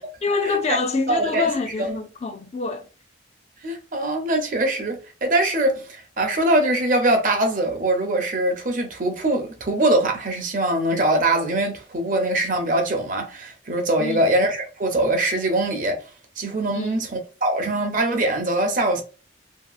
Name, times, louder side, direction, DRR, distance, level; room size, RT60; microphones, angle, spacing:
voice 1, 0.0-2.9 14.0-14.3 16.7-17.1, left 4 dB, 35° left, 0.3 m, -26 dB
voice 2, 1.1-1.5 1.8-1.9 3.6-16.0 16.4-19.0, right 1 dB, 45° right, 0.6 m, -22 dB
2.8 x 2.7 x 2.3 m
head